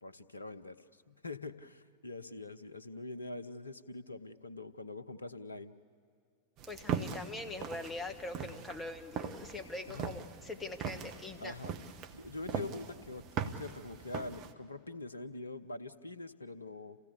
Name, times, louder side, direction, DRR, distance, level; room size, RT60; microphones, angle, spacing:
voice 1, 0.0-5.8 9.9-10.1 11.4-11.8 12.1-13.2 13.6-17.0, left 2 dB, 80° left, 14 dB, 0.8 m, -44 dB
sound 1, 6.6-14.5, right 7 dB, 40° right, 1.2 m, -41 dB
voice 2, 6.7-11.5 11.8-11.9, left 2 dB, 15° left, 6 dB, 1.6 m, -43 dB
28.0 x 16.5 x 8.5 m, 2.3 s
figure-of-eight pair, 90°, 0 cm